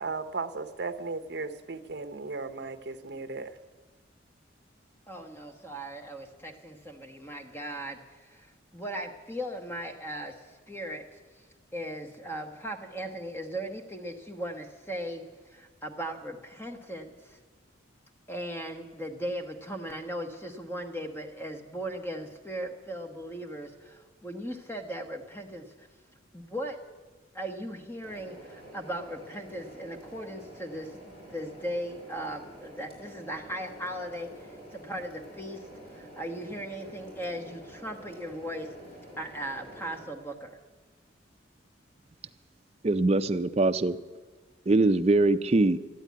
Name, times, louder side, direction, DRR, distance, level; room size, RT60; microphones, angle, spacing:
voice 1, 0.0-3.5, right 3 dB, 60° right, 10 dB, 0.8 m, -36 dB
voice 2, 5.1-11.4 11.7-17.4 18.3-25.9 26.3-26.8 27.3-38.7 39.2-40.6, equal, 10° left, 4 dB, 1.2 m, -38 dB
sound 1, 28.0-40.0, right 1 dB, 30° left, 5.2 m, -48 dB
voice 3, 42.8-44.0 44.7-45.8, right 2 dB, 35° right, 10 dB, 0.5 m, -23 dB
13.5 x 9.9 x 9.4 m, 1.3 s
head